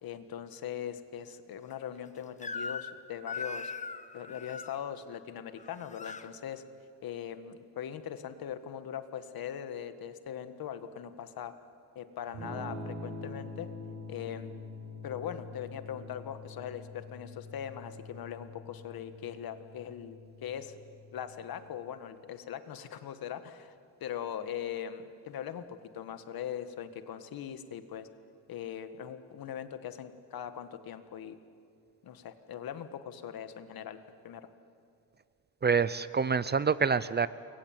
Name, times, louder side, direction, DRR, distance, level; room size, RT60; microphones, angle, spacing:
voice 1, 0.0-3.7 4.1-6.6 7.0-11.5 11.9-13.7 14.1-14.5 15.0-20.7 21.1-23.7 24.0-28.1 28.5-31.4 32.0-34.0 34.2-34.5, left 9 dB, 65° left, 10 dB, 1.7 m, -40 dB
Crying sobbing / Screech, 2.4-3.0 3.3-4.8 5.6-6.3, left 4 dB, 20° left, 1.0 m, -39 dB
Electric guitar / Strum, 12.3-22.1, left 2 dB, 85° right, 6.3 m, -45 dB
voice 2, 35.6-37.3, right 5 dB, 25° right, 16 dB, 0.6 m, -26 dB
28.5 x 22.5 x 9.0 m, 2.4 s
cardioid pair, 140°, 38 cm